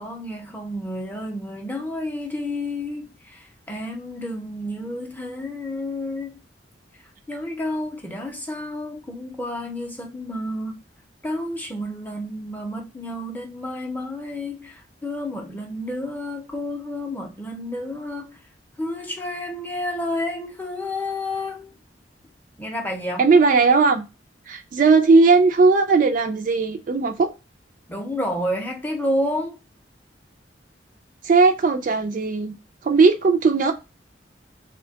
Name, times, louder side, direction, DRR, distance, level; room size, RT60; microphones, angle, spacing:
voice 1, 0.0-6.4 7.3-10.8 11.2-18.4 18.8-21.7 22.6-23.2 27.9-29.6, left 1 dB, 10° left, 0.6 m, -30 dB
voice 2, 23.2-24.0 24.5-27.3 31.2-32.5 32.8-33.7, right 4 dB, 45° right, 0.3 m, -17 dB
2.8 x 2.2 x 2.7 m
head